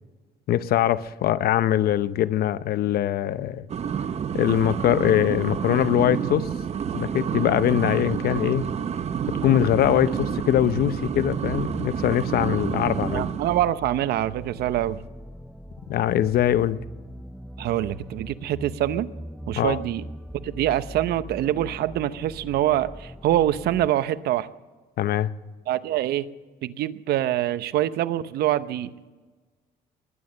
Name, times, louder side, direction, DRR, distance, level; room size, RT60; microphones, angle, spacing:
voice 1, 0.5-3.7 4.3-6.5 6.9-8.6 9.4-13.3 15.9-16.8 19.6-19.8 25.0-25.3, left 11 dB, 65° left, 15 dB, 0.7 m, -22 dB
sound 1, 3.7-13.7, right 7 dB, 40° right, 0.7 m, -29 dB
sound 2, 9.1-23.9, equal, ahead, 0.6 m, -40 dB
voice 2, 13.1-15.0 17.6-19.1 19.5-20.0 20.3-24.5 25.7-26.3 26.6-28.9, right 13 dB, 70° right, 14 dB, 0.8 m, -25 dB
21.0 x 9.4 x 6.6 m, 1.3 s
cardioid pair, 110°, 17 cm